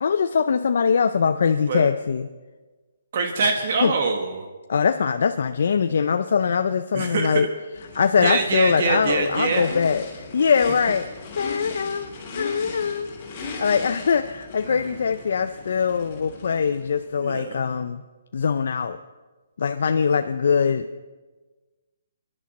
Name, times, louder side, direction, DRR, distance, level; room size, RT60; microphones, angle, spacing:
voice 1, 0.0-2.3 3.8-3.9 4.7-7.5 7.9-11.1 11.4-13.1 13.4-18.0 18.3-19.0 19.6-20.9, left 6 dB, 65° left, 8 dB, 0.5 m, -22 dB
voice 2, 3.1-4.5 6.9-7.4 8.2-9.7 14.6-15.0 17.2-17.6, right 4 dB, 50° right, 5 dB, 1.3 m, -24 dB
Race car auto racing / Idling / Accelerating revving vroom, 7.7-17.2, left 3 dB, 25° left, 3.1 m, -38 dB
24.0 x 11.0 x 4.2 m, 1.3 s
hypercardioid pair, 165°, 0 cm